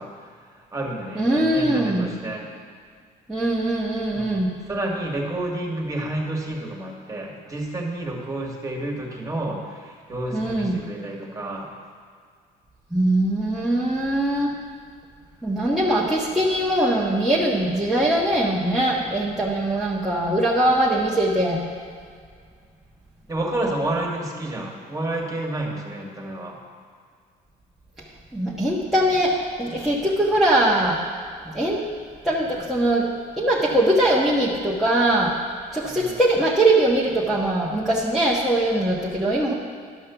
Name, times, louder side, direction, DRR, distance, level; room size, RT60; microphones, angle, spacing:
voice 1, 0.0-2.4 4.1-4.4 4.7-11.7 23.3-26.6 35.8-36.2, right 1 dB, 20° right, -1 dB, 1.9 m, -30 dB
voice 2, 1.1-2.1 3.3-4.5 10.3-10.8 12.9-14.5 15.4-21.6 28.3-31.0 31.5-31.8 32.2-33.1 33.4-35.3 35.7-39.5, right 1 dB, ahead, -7 dB, 1.3 m, -21 dB
11.5 x 5.4 x 6.9 m, 2.1 s
cardioid pair, 110°, 17 cm